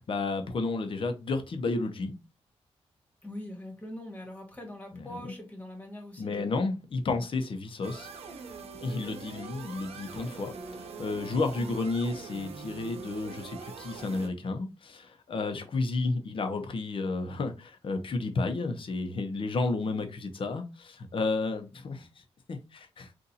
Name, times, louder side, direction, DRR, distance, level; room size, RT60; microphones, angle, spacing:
voice 1, 0.1-2.1 4.9-5.2 6.2-8.1 8.8-10.6 11.0-22.1 22.5-23.1, left 3 dB, 55° left, 0.8 m, -32 dB
voice 2, 3.2-6.6 11.6-11.8, left 1 dB, 15° left, 1.8 m, -42 dB
sound 1, 7.8-14.3, right 5 dB, 75° right, 0.8 m, -43 dB
4.0 x 2.6 x 2.8 m
cardioid pair, 80°, 10 cm